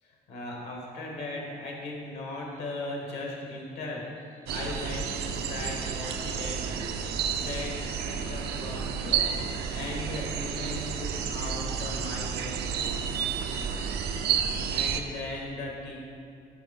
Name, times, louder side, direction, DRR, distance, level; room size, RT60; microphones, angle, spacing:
voice 1, 0.0-12.9 14.7-16.0, left 2 dB, 75° left, -1 dB, 1.8 m, -38 dB
sound 1, 4.5-15.0, right 7 dB, 75° right, 0.5 m, -31 dB
6.1 x 4.7 x 5.4 m, 2.4 s
cardioid pair, 110°, 17 cm